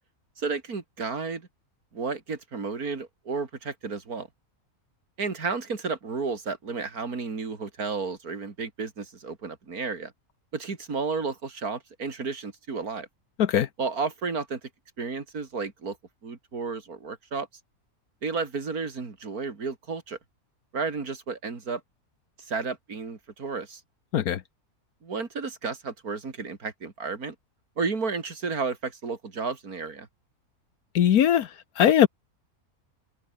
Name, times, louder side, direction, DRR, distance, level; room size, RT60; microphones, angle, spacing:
voice 1, 0.4-1.5 1.9-4.3 5.2-10.1 10.5-13.1 13.8-14.6 15.0-16.0 16.2-17.5 18.2-20.2 20.7-21.8 22.4-23.8 25.0-27.3 27.8-30.1, right 4 dB, 80° right, 3.3 m, -32 dB
voice 2, 30.9-31.5 31.8-32.1, left 10 dB, 80° left, 1.4 m, -20 dB
omnidirectional pair, 1.5 m